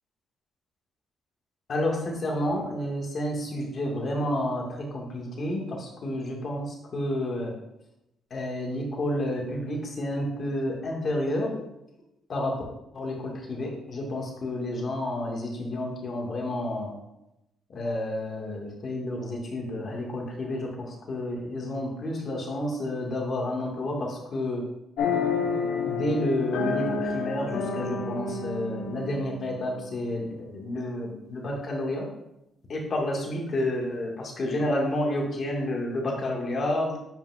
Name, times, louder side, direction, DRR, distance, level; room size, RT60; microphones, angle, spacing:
voice 1, 1.7-7.5 8.3-11.5 12.3-12.6 12.9-16.9 17.7-24.6 25.8-32.1 32.7-36.9, left 1 dB, 50° left, -1 dB, 1.6 m, -30 dB
sound 1, 25.0-30.4, left 4 dB, 85° left, 0.6 m, -30 dB
7.5 x 5.3 x 2.4 m, 0.86 s
cardioid pair, 90°, 0 cm